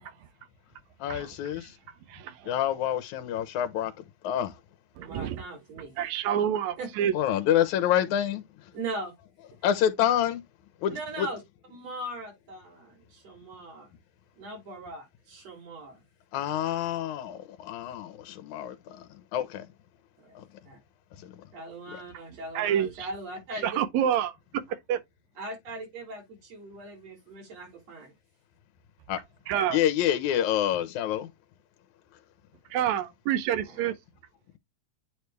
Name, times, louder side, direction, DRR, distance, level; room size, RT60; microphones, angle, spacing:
voice 1, 1.0-1.8 2.4-3.9 4.2-4.6 7.1-8.7 9.6-10.4 10.8-11.3 16.3-19.7 20.4-20.5 21.2-21.4 21.9-22.0 29.1-29.2 29.7-31.3, left 10 dB, 80° left, 2.4 m, -27 dB
voice 2, 2.1-2.5 5.0-5.4 6.0-7.1 22.6-23.1 23.6-24.3 24.9-25.0 29.5-29.8 32.7-33.9, right 10 dB, 75° right, 2.1 m, -27 dB
voice 3, 5.0-5.9 6.8-6.9 8.7-9.1 10.9-11.4 11.7-13.9 14.4-16.0 20.2-20.4 20.7-20.8 21.5-23.8 25.4-28.1 33.7-33.8, right 2 dB, 60° right, 4.3 m, -39 dB
8.9 x 3.2 x 3.4 m
omnidirectional pair, 3.3 m